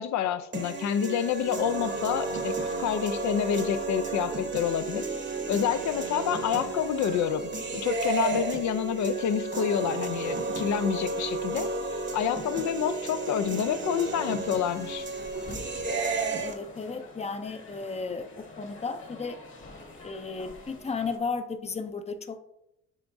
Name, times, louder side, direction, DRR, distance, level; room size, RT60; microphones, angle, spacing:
voice 1, 0.0-5.1 5.5-15.1, left 9 dB, 70° left, 11 dB, 0.5 m, -28 dB
sound 1, 0.5-16.5, right 3 dB, 40° right, 0.9 m, -32 dB
sound 2, 12.3-21.2, left 2 dB, 40° left, 1.4 m, -48 dB
voice 2, 16.4-19.4 20.0-22.4, left 4 dB, 20° left, 8 dB, 0.6 m, -34 dB
10.0 x 3.5 x 2.7 m, 0.86 s
cardioid pair, 90°, 30 cm